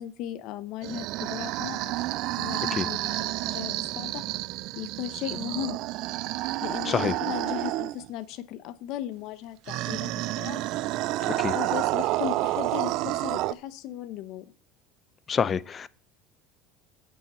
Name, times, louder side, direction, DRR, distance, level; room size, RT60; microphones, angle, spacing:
voice 1, 0.0-2.1 2.3-4.2 4.7-5.8 6.6-10.6 11.3-14.5, left 12 dB, 65° left, 0.8 m, -37 dB
sound 1, 0.8-8.1 9.7-13.5, right 17 dB, 65° right, 0.4 m, -30 dB
voice 2, 15.3-15.9, left 7 dB, 30° left, 0.6 m, -26 dB
8.9 x 5.7 x 7.2 m
supercardioid pair, 105°, 0 cm